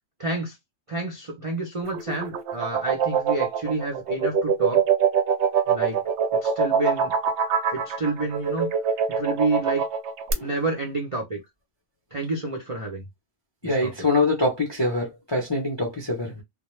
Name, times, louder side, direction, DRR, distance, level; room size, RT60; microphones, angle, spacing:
voice 1, 0.2-0.6 0.9-4.8 5.7-6.0 6.4-7.1 7.7-8.7 9.1-9.8 10.4-11.4 12.1-13.1 13.6-13.9 16.2-16.4, right 2 dB, 50° right, 0.4 m, -29 dB
sound 1, 1.8-10.3, right 7 dB, 65° right, 0.8 m, -23 dB
voice 2, 13.6-16.3, left 2 dB, 35° left, 0.4 m, -24 dB
2.2 x 2.1 x 3.0 m
omnidirectional pair, 1.5 m